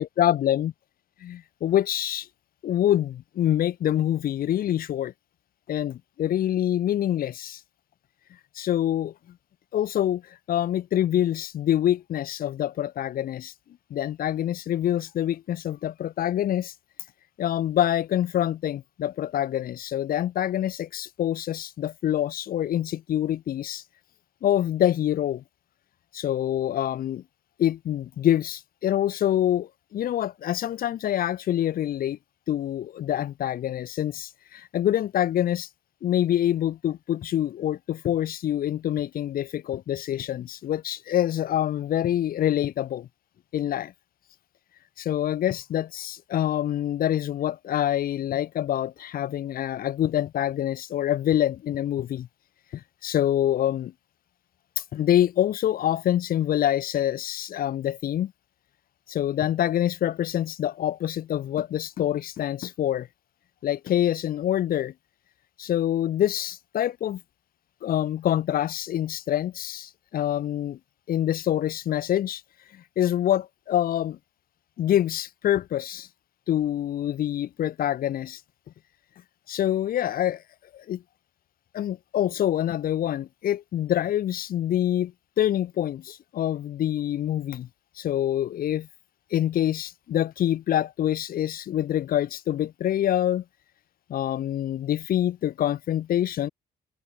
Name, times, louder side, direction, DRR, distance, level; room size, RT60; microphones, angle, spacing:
voice 1, 0.0-0.7 1.2-2.3 2.6-5.1 5.7-7.6 8.5-9.1 9.7-13.5 13.9-16.7 17.4-23.8 24.4-25.4 26.1-27.2 27.6-32.2 32.5-35.7 36.0-43.1 43.5-43.9 45.0-52.3 52.7-53.9 54.8-58.3 59.1-63.1 63.6-64.9 65.6-67.2 67.8-70.8 71.1-72.4 72.7-74.2 74.8-76.1 76.5-78.4 79.5-80.4 80.7-81.0 81.7-87.7 88.0-88.9 89.3-93.4 94.1-96.5, left 11 dB, 60° left, 2.4 m, -26 dB
cardioid pair, 110°, 17 cm